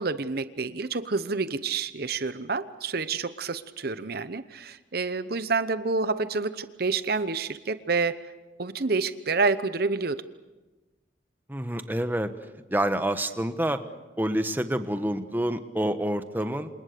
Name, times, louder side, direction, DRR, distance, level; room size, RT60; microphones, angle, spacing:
voice 1, 0.0-8.2 8.6-10.2, right 4 dB, 50° right, 12 dB, 0.9 m, -28 dB
voice 2, 11.5-12.3 12.7-13.8 14.2-16.7, right 1 dB, 10° right, 8 dB, 1.2 m, -27 dB
28.5 x 27.5 x 6.8 m, 1.1 s
head